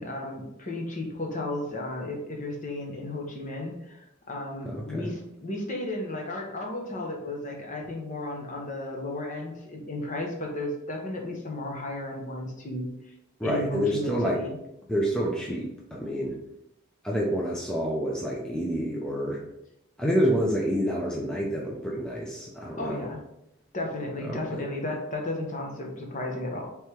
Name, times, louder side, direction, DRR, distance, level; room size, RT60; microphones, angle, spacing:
voice 1, 0.0-12.9 13.4-14.6 22.8-23.2 23.7-26.6, left 1 dB, 35° left, 1 dB, 0.8 m, -34 dB
voice 2, 4.6-5.1 13.4-14.4 14.9-16.4 17.0-19.4 20.0-23.1 24.3-24.6, equal, 5° left, -4 dB, 0.5 m, -28 dB
3.4 x 3.2 x 4.4 m, 0.83 s
head